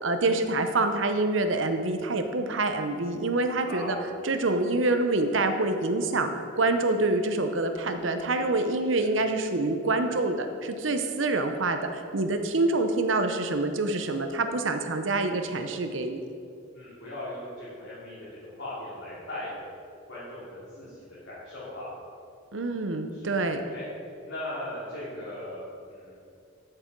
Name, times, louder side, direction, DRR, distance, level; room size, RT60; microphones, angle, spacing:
voice 1, 0.0-4.0 4.2-6.3 6.6-16.3 22.5-23.6, right 2 dB, 70° right, 7 dB, 0.8 m, -26 dB
voice 2, 3.6-4.1 8.9-9.1 16.7-19.5 20.1-21.9 23.1-23.4 23.7-23.8 24.2-26.1, left 1 dB, 70° left, -10 dB, 2.8 m, -39 dB
12.5 x 6.8 x 4.6 m, 2.5 s
head